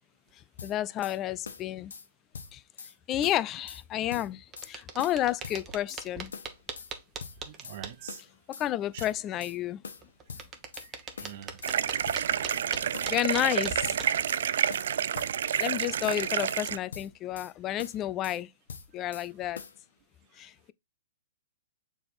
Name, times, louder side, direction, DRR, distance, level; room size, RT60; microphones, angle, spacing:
sound 1, 0.6-1.2 1.5-2.1 2.3-2.9 3.2-3.8 4.1-4.7 5.0-6.0 6.3-6.9 7.2-7.8 8.1-8.7 9.0-9.6 9.8-10.9 11.2-11.8 12.1-12.7 12.9-13.5 13.8-14.4 14.7-15.8 16.0-16.6 16.9-17.5 17.8-18.4 18.7-19.3 19.6-19.8, left 6 dB, 80° left, 1.1 m, -43 dB
voice 1, 0.6-1.9 2.5-2.6 3.1-6.3 8.6-9.8 12.8-14.0 15.6-18.5 18.9-19.6 20.4-20.7, left 13 dB, 25° left, 0.4 m, -31 dB
sound 2, 4.5-7.9 10.0-14.2, right 5 dB, 20° right, 1.1 m, -40 dB
voice 2, 7.4-8.2 8.9-9.1 10.8-13.6, right 11 dB, 50° right, 0.9 m, -47 dB
sound 3, 11.6-16.8, right 9 dB, 65° right, 0.4 m, -29 dB
6.9 x 3.5 x 4.1 m
hypercardioid pair, 135°, 0 cm